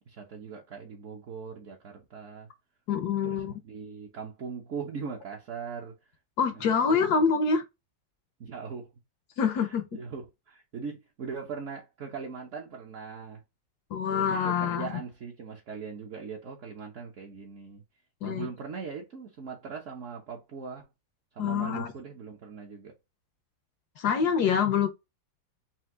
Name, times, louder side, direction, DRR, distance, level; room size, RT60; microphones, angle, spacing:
voice 1, 0.1-2.5 3.2-6.0 6.5-7.1 8.4-8.9 9.5-13.4 14.1-17.8 18.2-20.9 21.3-22.9, right 5 dB, 50° right, 1.0 m, -40 dB
voice 2, 2.9-3.5 6.4-7.6 9.4-9.9 13.9-14.9 18.2-18.5 21.4-21.9 24.0-24.9, left 6 dB, 65° left, 1.1 m, -26 dB
4.5 x 2.7 x 3.7 m
omnidirectional pair, 2.1 m